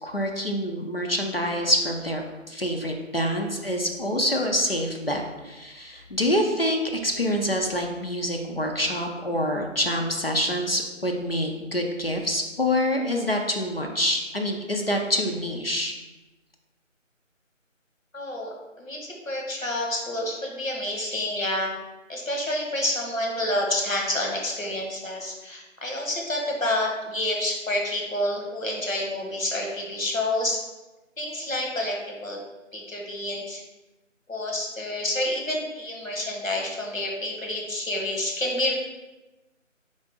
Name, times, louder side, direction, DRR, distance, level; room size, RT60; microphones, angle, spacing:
voice 1, 0.0-16.0, equal, 50° left, 2 dB, 0.5 m, -26 dB
voice 2, 18.1-21.7 22.1-30.6 31.2-32.4 32.7-33.6 34.3-38.7, left 1 dB, 85° left, 0 dB, 1.3 m, -28 dB
3.8 x 3.7 x 3.8 m, 1.1 s
figure-of-eight pair, 165°, 39 cm